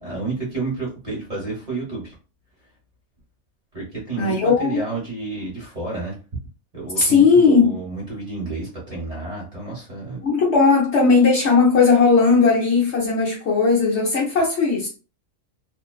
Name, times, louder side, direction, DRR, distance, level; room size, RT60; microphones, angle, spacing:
voice 1, 0.0-2.1 3.7-6.2 6.7-10.2, right 3 dB, 30° right, 0.9 m, -30 dB
voice 2, 4.2-4.8 7.0-7.8 10.2-14.9, left 4 dB, 60° left, 0.9 m, -17 dB
2.5 x 2.1 x 2.3 m
omnidirectional pair, 1.5 m